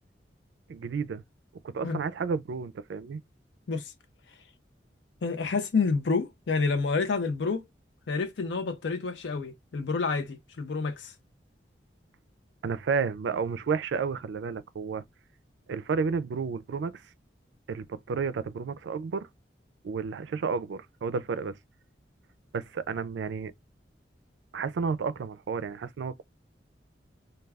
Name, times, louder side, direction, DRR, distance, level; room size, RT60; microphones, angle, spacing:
voice 1, 0.7-1.2 1.7-3.2 12.6-15.0 15.7-17.0 17.7-19.3 19.8-21.6 22.5-23.5 24.5-26.2, right 5 dB, 90° right, 0.4 m, -31 dB
voice 2, 5.2-7.6 8.1-11.1, left 4 dB, 85° left, 0.5 m, -28 dB
2.2 x 2.2 x 3.3 m
head